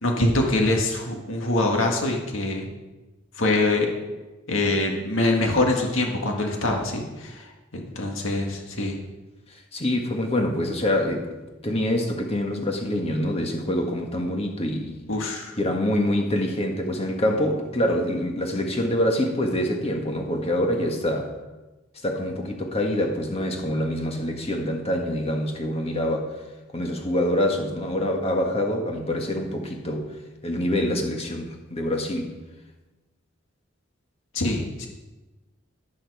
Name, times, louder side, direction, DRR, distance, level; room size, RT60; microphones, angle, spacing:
voice 1, 0.0-2.7 3.4-3.9 4.5-9.0 15.1-15.5 34.3-34.9, left 2 dB, 85° left, 1 dB, 1.9 m, -24 dB
voice 2, 9.7-11.4 11.6-15.1 15.6-21.3 22.0-26.3 26.7-30.1 30.4-32.4, left 1 dB, 30° left, 3 dB, 1.7 m, -25 dB
11.5 x 11.0 x 4.8 m, 1.1 s
head